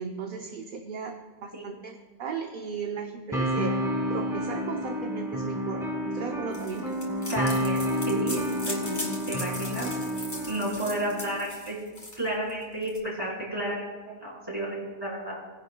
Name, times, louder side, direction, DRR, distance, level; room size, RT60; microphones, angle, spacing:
voice 1, 0.0-3.8 4.1-5.9 6.1-6.9, right 5 dB, 55° right, 3 dB, 0.9 m, -36 dB
sound 1, 3.3-11.4, equal, 5° right, 1.7 m, -30 dB
sound 2, 6.5-13.0, left 1 dB, 35° left, 2.0 m, -39 dB
voice 2, 7.3-9.9 10.5-11.8 12.2-15.4, right 1 dB, 20° right, -6 dB, 4.1 m, -32 dB
19.0 x 10.5 x 2.2 m, 1.4 s
omnidirectional pair, 1.1 m